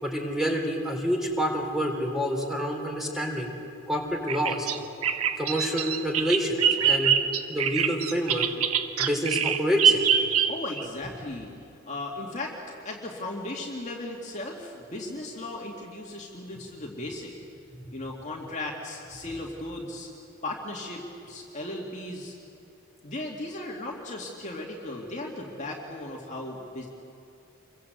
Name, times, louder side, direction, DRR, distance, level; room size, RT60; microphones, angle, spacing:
voice 1, 0.0-3.5 3.9-4.7 5.4-7.1 7.5-8.5 9.0-10.1 17.7-17.9, equal, ahead, 1 dB, 3.7 m, -28 dB
Bird vocalization bird call bird song, 4.3-10.8, right 8 dB, 80° right, 1.4 m, -24 dB
voice 2, 10.5-11.5 11.8-12.6 12.8-17.3 17.9-20.1 20.4-22.4 23.0-26.9, left 2 dB, 35° left, -1 dB, 2.3 m, -36 dB
27.5 x 23.0 x 8.1 m, 2.7 s
head